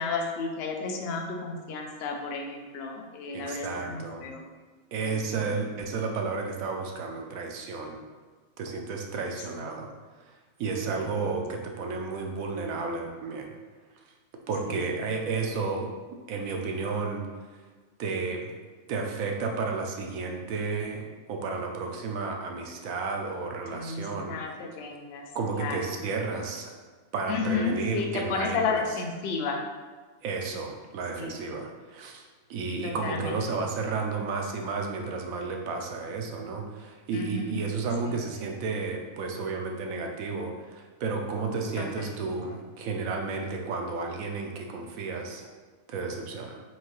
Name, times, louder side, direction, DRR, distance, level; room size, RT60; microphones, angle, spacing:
voice 1, 0.0-4.4 5.0-5.5 9.6-9.8 10.9-11.0 11.3-11.4 14.7-14.9 23.7-25.2 25.5-25.8 27.3-29.6 31.2-31.4 32.8-33.6 37.1-37.6 38.0-38.1 41.8-42.3, left 4 dB, 60° left, 2 dB, 0.7 m, -33 dB
voice 2, 3.3-4.4 4.9-8.0 8.6-9.9 10.3-10.4 10.6-13.5 14.5-15.9 16.3-17.2 18.0-18.5 18.9-24.4 25.3-26.7 27.1-28.8 30.2-32.2 32.5-45.5 45.9-46.6, right 4 dB, 80° right, 2 dB, 1.0 m, -32 dB
4.4 x 2.7 x 3.0 m, 1.4 s
omnidirectional pair, 1.4 m